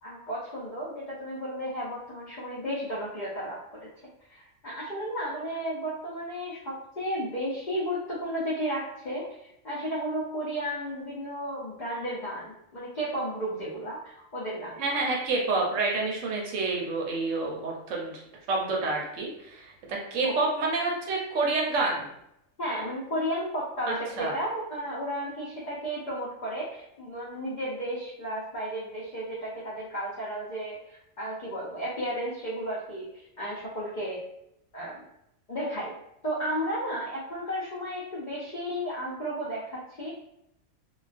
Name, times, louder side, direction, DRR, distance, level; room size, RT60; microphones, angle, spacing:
voice 1, 0.0-3.9 4.3-14.8 20.2-20.3 22.6-34.2 34.7-35.0 35.5-35.9 36.2-40.1, equal, 85° left, -6 dB, 0.4 m, -33 dB
voice 2, 14.8-18.2 18.5-22.1 23.9-24.3, right 3 dB, 70° right, -1 dB, 0.8 m, -28 dB
2.3 x 2.3 x 2.4 m, 0.79 s
omnidirectional pair, 1.5 m